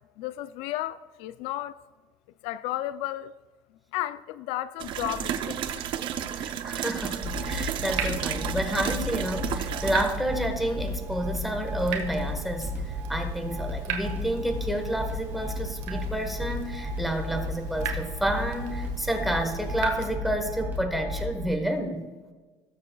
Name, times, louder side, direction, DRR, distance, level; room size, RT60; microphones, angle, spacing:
voice 1, 0.2-1.8 2.4-3.3 3.9-5.8, left 14 dB, 75° left, 0.4 m, -33 dB
sound 1, 4.8-10.2, right 9 dB, 50° right, 0.7 m, -32 dB
voice 2, 6.4-12.7 13.1-22.0, right 1 dB, ahead, 1.3 m, -30 dB
sound 2, 7.2-21.5, left 1 dB, 20° right, 2.7 m, -34 dB
Water tap faucet / Drip, 7.2-20.1, right 6 dB, 80° right, 1.5 m, -39 dB
19.5 x 7.4 x 2.3 m
cardioid pair, 135°, 10 cm